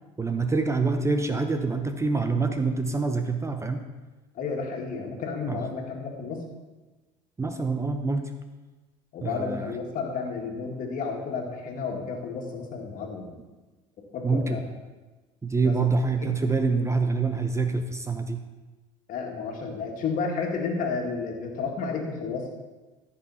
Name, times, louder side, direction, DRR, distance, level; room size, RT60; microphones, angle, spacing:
voice 1, 0.2-3.8 5.5-5.6 7.4-8.3 9.2-9.8 14.2-14.7 15.4-18.4, right 4 dB, 15° right, 7 dB, 0.7 m, -26 dB
voice 2, 4.4-6.4 9.1-13.3 14.1-14.6 15.6-16.0 19.1-22.5, left 4 dB, 55° left, 1 dB, 2.1 m, -32 dB
14.0 x 5.6 x 4.2 m, 1.2 s
hypercardioid pair, 80°, 17 cm